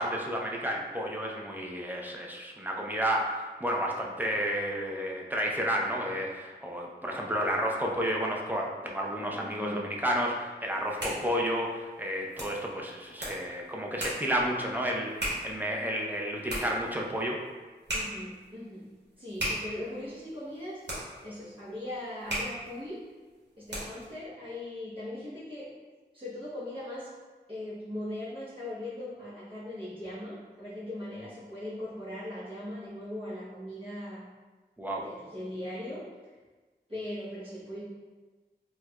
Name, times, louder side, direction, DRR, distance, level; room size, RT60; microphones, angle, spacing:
voice 1, 0.0-17.4 34.8-35.0, equal, 10° right, -2 dB, 0.5 m, -31 dB
voice 2, 9.4-9.9 17.9-18.9 19.2-23.0 23.6-25.7 26.1-27.1 27.5-34.3 34.9-36.0 36.9-37.8, left 1 dB, 30° right, -11 dB, 0.9 m, -39 dB
sound 1, 10.7-24.1, right 1 dB, 75° right, 1.1 m, -39 dB
4.4 x 2.3 x 2.2 m, 1.3 s
wide cardioid pair, 50°, 18 cm